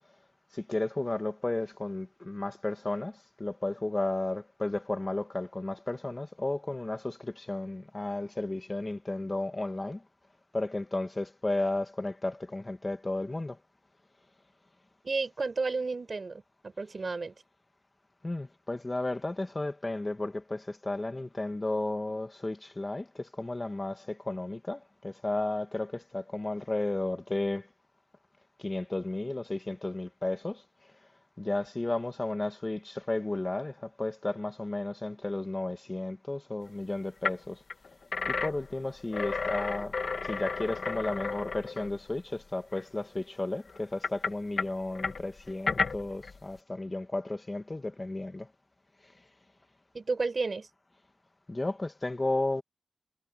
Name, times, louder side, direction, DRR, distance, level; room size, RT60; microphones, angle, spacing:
voice 1, 0.5-10.0 10.5-13.6 18.2-27.7 28.6-30.6 31.4-37.6 38.3-40.0 40.2-48.5 51.5-52.6, left 2 dB, 25° left, 2.2 m, -33 dB
voice 2, 15.0-17.3 49.9-50.7, right 3 dB, 50° right, 5.6 m, -32 dB
sound 1, 36.7-36.8 37.2-37.4 37.7-42.3 42.7-42.8 43.7-46.4, left 4 dB, 65° left, 2.2 m, -33 dB
wide cardioid pair, 85°, 0 cm